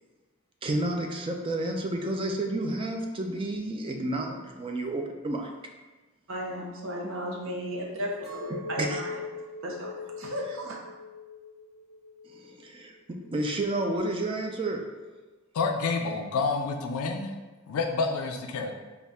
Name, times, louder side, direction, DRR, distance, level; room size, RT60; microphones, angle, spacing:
voice 1, 0.6-5.5 8.5-9.0 10.5-10.6 12.3-14.8, right 1 dB, 25° right, 2 dB, 0.3 m, -31 dB
voice 2, 6.3-9.1 9.6-9.9 10.2-10.8, equal, 60° right, -2 dB, 0.7 m, -34 dB
Chink clink, 8.2-12.5 13.0-13.6, left 3 dB, ahead, 1.4 m, -41 dB
voice 3, 15.5-17.3 17.7-18.8, left 4 dB, 80° left, 4 dB, 0.4 m, -28 dB
4.0 x 2.3 x 3.5 m, 1.2 s
head